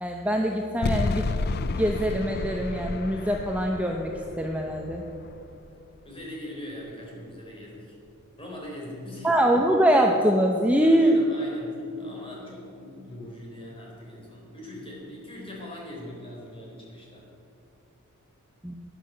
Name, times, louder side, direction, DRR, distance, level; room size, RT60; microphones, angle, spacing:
voice 1, 0.0-1.3 1.7-5.1 9.2-11.2 18.6-18.7, equal, 5° right, 1 dB, 0.7 m, -23 dB
sound 1, 0.8-6.0, left 3 dB, 45° left, 0.5 m, -31 dB
voice 2, 6.0-8.0 8.4-9.3 10.8-17.3, left 1 dB, 25° left, -3 dB, 4.0 m, -41 dB
12.0 x 10.0 x 7.6 m, 2.8 s
head